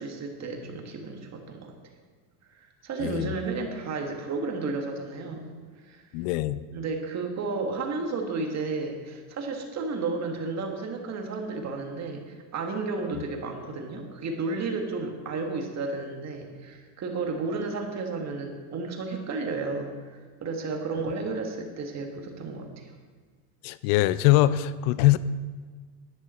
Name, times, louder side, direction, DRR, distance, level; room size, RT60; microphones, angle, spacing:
voice 1, 0.0-1.7 2.5-5.5 5.8-6.0 6.7-22.9, right 3 dB, 40° right, 3 dB, 1.8 m, -32 dB
voice 2, 3.0-3.3 6.1-6.6 23.6-25.2, left 15 dB, 80° left, 16 dB, 0.6 m, -22 dB
10.5 x 9.8 x 4.4 m, 1.5 s
supercardioid pair, 115°, 41 cm